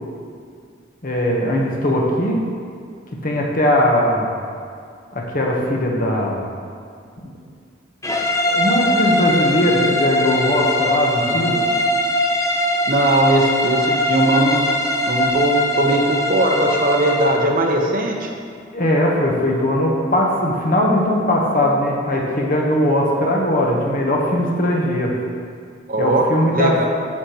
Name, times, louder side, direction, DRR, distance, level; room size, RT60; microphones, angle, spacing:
voice 1, 1.0-2.4 3.2-4.3 5.1-6.4 8.5-11.6 18.7-25.1 26.0-26.9, left 1 dB, 45° left, -1 dB, 1.1 m, -19 dB
sound 1, 8.0-17.5, left 1 dB, 15° left, 0.5 m, -21 dB
voice 2, 11.1-11.5 12.9-14.6 15.1-18.3 25.9-26.3 26.5-26.9, right 1 dB, 50° right, 1 dB, 0.9 m, -19 dB
10.0 x 6.6 x 3.0 m, 2.2 s
head